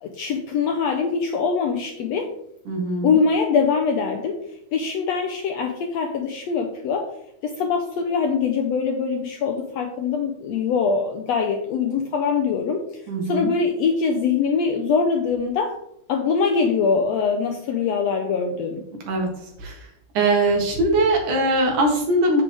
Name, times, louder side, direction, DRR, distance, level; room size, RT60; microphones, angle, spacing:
voice 1, 0.0-2.3 3.0-4.4 4.7-7.1 7.4-12.8 13.2-15.8 16.1-18.8, left 5 dB, 75° left, 3 dB, 1.6 m, -23 dB
voice 2, 2.7-3.1 13.1-13.5 19.0-19.3 19.6-19.7 20.1-22.4, right 2 dB, 70° right, 1 dB, 3.2 m, -21 dB
8.7 x 7.7 x 3.5 m, 0.77 s
omnidirectional pair, 3.8 m